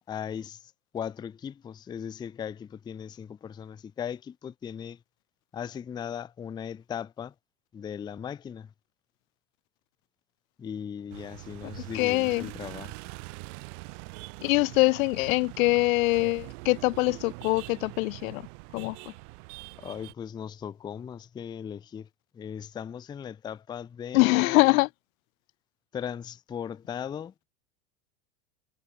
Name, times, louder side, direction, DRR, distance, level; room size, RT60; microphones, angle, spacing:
voice 1, 0.1-0.6 0.9-5.0 5.5-7.3 7.7-8.7 10.6-12.9 19.8-22.1 22.3-24.8 25.9-27.5, left 8 dB, 10° left, 0.4 m, -38 dB
sound 1, 11.1-20.1, right 30 dB, 55° right, 0.8 m, -43 dB
voice 2, 11.9-12.5 14.4-18.4 18.7-19.0 24.1-24.9, left 23 dB, 70° left, 0.5 m, -23 dB
supercardioid pair, 125°, 43 cm